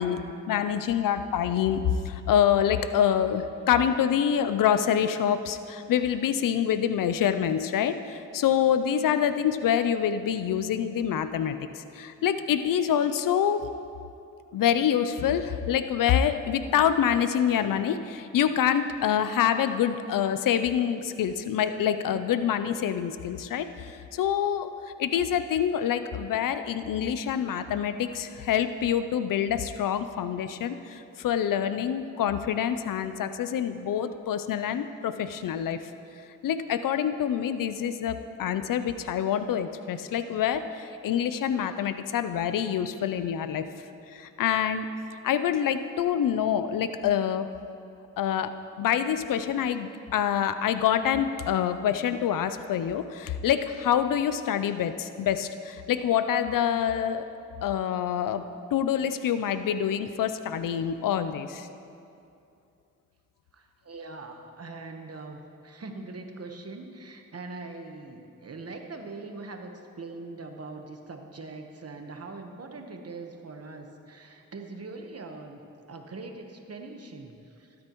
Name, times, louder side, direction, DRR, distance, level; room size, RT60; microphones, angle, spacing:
voice 1, 0.0-13.7 14.5-24.7 25.0-35.9 36.4-43.6 44.1-44.9 45.2-47.5 48.2-48.5 48.8-57.2 57.6-58.4 58.7-61.7, left 9 dB, 85° left, 11 dB, 0.5 m, -26 dB
voice 2, 63.5-75.6 75.9-77.7, right 3 dB, 50° right, 4 dB, 1.2 m, -42 dB
13.0 x 12.5 x 3.0 m, 2.6 s
cardioid pair, 60°, 32 cm